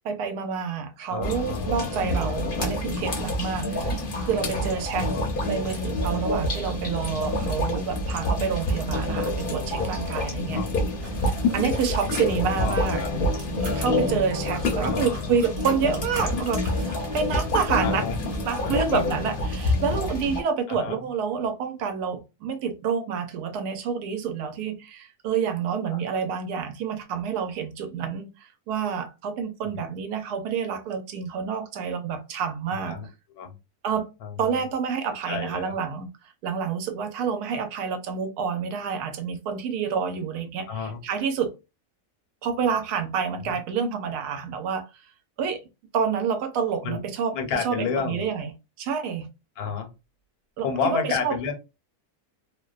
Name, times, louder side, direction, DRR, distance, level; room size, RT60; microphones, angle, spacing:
voice 1, 0.0-5.1 5.5-10.6 11.5-13.0 13.8-18.0 18.4-33.0 33.8-34.1 34.4-36.1 36.4-41.5 42.4-44.8 45.4-45.6 45.9-47.3 47.6-48.5 48.8-49.3 50.6-51.5, right 6 dB, 85° right, 1.1 m, -28 dB
voice 2, 1.1-2.0 5.0-5.3 10.5-10.7 12.3-13.2 14.8-15.3 17.8-18.2 18.6-19.2 20.7-21.0 32.8-33.1 33.3-33.5 34.2-34.6 35.3-35.7 40.7-41.0 46.8-47.0 47.3-48.3 49.6-49.9 50.6-51.5, left 6 dB, 80° left, 1.1 m, -31 dB
sound 1, 1.2-20.4, left 1 dB, 55° left, 0.6 m, -27 dB
sound 2, 10.9-13.1 13.4-18.6, right 1 dB, 40° right, 1.0 m, -43 dB
2.7 x 2.0 x 2.3 m
omnidirectional pair, 1.6 m